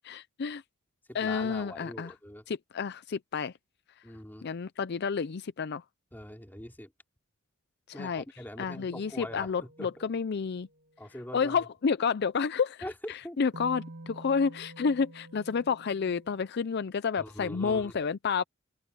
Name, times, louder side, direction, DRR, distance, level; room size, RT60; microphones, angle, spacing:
voice 1, 0.1-0.6 1.1-2.1 2.5-3.5 4.4-5.8 7.9-8.2 8.6-10.7 11.3-18.4, left 5 dB, 55° left, 0.5 m, -30 dB
voice 2, 1.1-2.4 4.0-4.5 6.1-6.9 7.9-10.0 11.0-11.6 12.8-12.9 13.2-13.4 17.2-17.9, left 1 dB, 10° left, 2.8 m, -43 dB
sound 1, 8.7-11.1 13.5-16.5, right 2 dB, 55° right, 1.9 m, -50 dB
open air
head